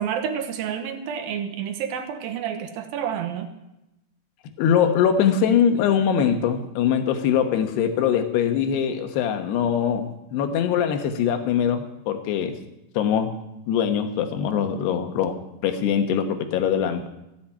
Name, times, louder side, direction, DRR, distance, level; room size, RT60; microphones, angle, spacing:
voice 1, 0.0-3.5, right 8 dB, 70° right, 6 dB, 2.8 m, -29 dB
voice 2, 4.6-12.6 12.9-13.3 13.7-15.4 15.6-17.1, left 8 dB, 75° left, 7 dB, 3.3 m, -22 dB
16.5 x 7.8 x 8.8 m, 0.91 s
omnidirectional pair, 4.9 m